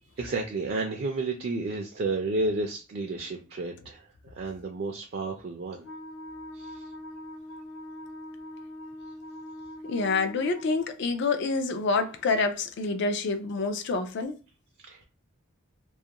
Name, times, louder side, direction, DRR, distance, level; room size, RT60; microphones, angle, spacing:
voice 1, 0.2-4.1 4.4-5.8 6.5-6.8 14.9-15.0, right 3 dB, 50° right, 0.4 m, -31 dB
Wind instrument woodwind instrument, 5.8-11.0, left 1 dB, 80° left, 0.8 m, -42 dB
voice 2, 9.8-14.4, left 3 dB, 55° left, 0.4 m, -27 dB
2.3 x 2.1 x 2.8 m
head